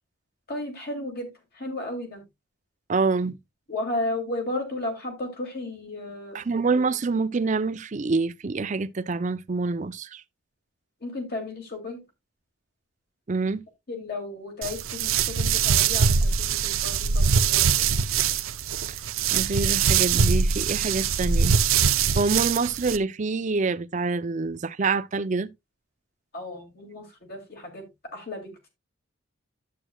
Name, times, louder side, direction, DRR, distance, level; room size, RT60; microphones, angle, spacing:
voice 1, 0.5-1.3 1.6-2.2 3.7-6.4 11.0-12.0 13.9-17.8 26.3-27.8 28.1-28.7, left 2 dB, 50° left, 2.4 m, -34 dB
voice 2, 2.9-3.4 6.3-10.2 13.3-13.6 19.3-21.6 22.2-25.5, right 4 dB, 35° right, 0.5 m, -26 dB
sound 1, 14.6-23.0, right 6 dB, 85° right, 0.6 m, -23 dB
11.0 x 7.6 x 2.2 m
head